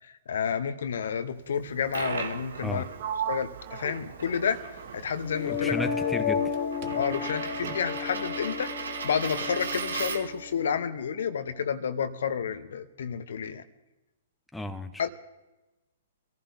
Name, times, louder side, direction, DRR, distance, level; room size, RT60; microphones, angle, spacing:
voice 1, 0.0-2.9 3.3-4.6 4.9-5.8 6.9-13.6 15.0-15.1, left 7 dB, 60° left, 12 dB, 0.9 m, -30 dB
Coin (dropping), 1.6-10.5, right 5 dB, 65° right, 1.3 m, -38 dB
Sliding door, 3.0-6.6 6.8-8.1, right 10 dB, 40° right, 0.9 m, -39 dB
sound 1, 5.2-11.2, left 7 dB, 45° left, 1.6 m, -33 dB
voice 2, 5.4-6.5 14.5-15.1, left 1 dB, 5° left, 7 dB, 0.9 m, -34 dB
25.0 x 15.0 x 2.7 m, 1.0 s
figure-of-eight pair, 115°, 0 cm